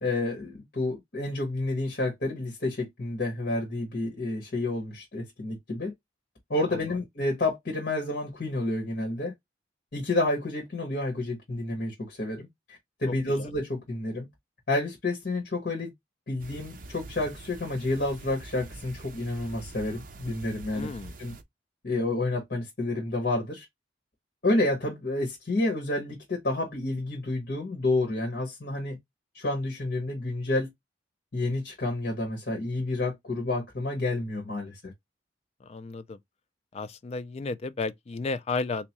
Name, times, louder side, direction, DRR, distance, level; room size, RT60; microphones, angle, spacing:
voice 1, 0.0-5.9 6.5-9.3 9.9-14.3 14.7-15.9 16.3-20.9 21.2-21.4 21.8-23.7 24.4-29.0 29.3-30.7 31.3-34.9, left 2 dB, 60° left, 1.4 m, -29 dB
sound 1, 16.4-21.4, right 2 dB, 50° right, 0.6 m, -45 dB
voice 2, 20.7-21.1 35.6-36.2 36.7-38.9, left 3 dB, 35° left, 0.3 m, -33 dB
3.5 x 3.0 x 2.9 m
head